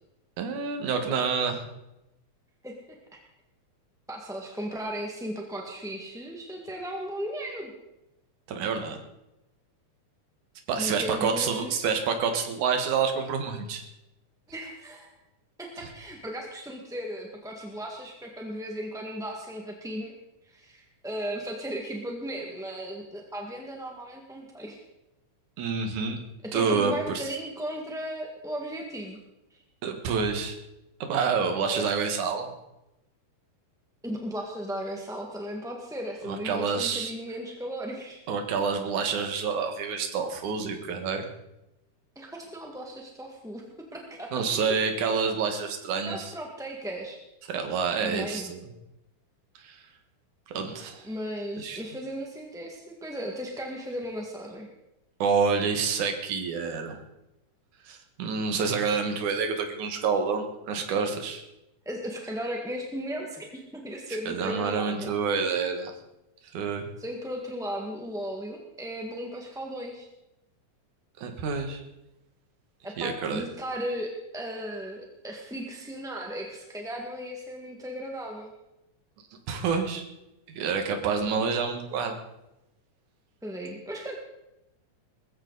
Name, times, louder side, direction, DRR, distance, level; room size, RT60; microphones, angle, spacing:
voice 1, 0.4-1.6 8.5-9.0 10.7-13.8 25.6-26.2 26.5-27.2 29.8-30.6 31.0-32.5 36.3-37.1 38.3-41.3 44.3-46.3 47.5-48.6 49.6-49.8 50.5-51.0 51.6-51.8 55.2-57.0 57.9-61.4 64.3-65.9 66.5-66.9 71.2-71.8 73.0-73.4 79.5-80.0 80.5-82.2, right 5 dB, 70° right, 5 dB, 3.1 m, -28 dB
voice 2, 4.1-7.7 10.7-11.7 14.5-15.2 15.6-20.1 20.4-24.8 26.4-29.2 29.5-29.6 31.6-31.8 34.0-38.2 42.1-43.6 43.9-44.4 46.0-47.2 48.0-48.5 51.0-54.7 61.8-65.1 67.0-70.1 72.8-78.5 83.4-84.1, equal, ahead, 0 dB, 1.0 m, -36 dB
20.5 x 14.5 x 4.1 m, 0.91 s
omnidirectional pair, 3.6 m